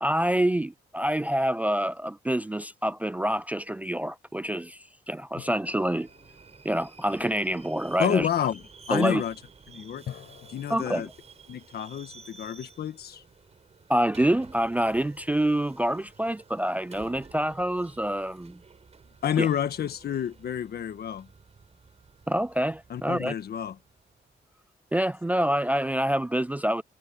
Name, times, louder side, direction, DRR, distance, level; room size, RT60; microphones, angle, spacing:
voice 1, 0.0-4.8 5.1-6.1 6.7-8.3 8.9-9.2 10.7-11.1 13.9-18.6 19.4-19.5 22.3-23.3 24.9-26.8, right 1 dB, 10° right, 0.3 m, -26 dB
sound 1, 5.4-7.7 10.1-13.0, left 10 dB, 90° left, 5.9 m, -48 dB
Subway metro underground, 5.9-24.4, right 4 dB, 40° right, 5.5 m, -52 dB
voice 2, 8.0-8.6 8.9-9.3 9.7-10.0 10.5-11.1 11.5-13.2 19.2-21.3 22.9-23.7, left 9 dB, 70° left, 1.6 m, -29 dB
cardioid pair, 115°, 17 cm